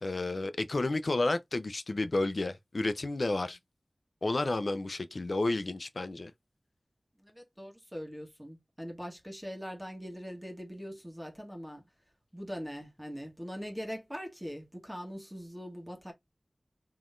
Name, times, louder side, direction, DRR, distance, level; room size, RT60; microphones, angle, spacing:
voice 1, 0.0-3.6 4.2-6.3, left 2 dB, 70° left, 0.5 m, -31 dB
voice 2, 7.2-11.8 12.3-16.1, equal, 10° right, 1.4 m, -42 dB
3.9 x 3.0 x 2.5 m
wide cardioid pair, 40°, 0 cm